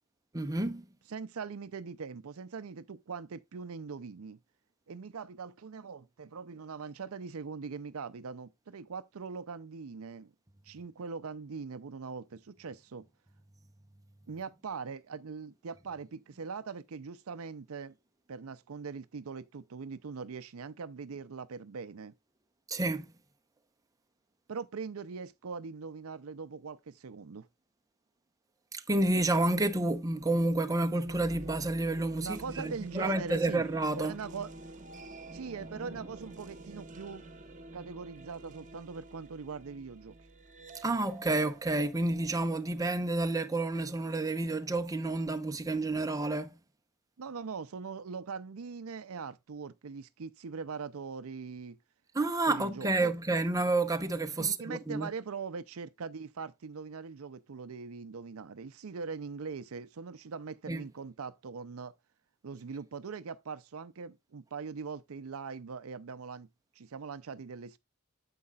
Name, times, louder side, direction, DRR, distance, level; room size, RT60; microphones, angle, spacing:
voice 1, 0.3-0.8 22.7-23.1 28.7-34.1 40.8-46.5 52.1-55.1 60.7-60.8, right 2 dB, 15° right, 0.7 m, -30 dB
voice 2, 1.1-4.4 4.9-10.3 10.6-13.1 14.3-17.9 18.3-22.1 24.5-27.5 32.2-33.7 33.9-34.5 35.3-37.2 37.7-40.1 47.2-51.8 52.5-53.1 54.4-61.9 62.4-66.5 66.8-67.8, right 5 dB, 70° right, 0.5 m, -41 dB
sound 1, 31.0-42.8, right 2 dB, 35° right, 1.2 m, -48 dB
9.5 x 7.6 x 2.4 m
head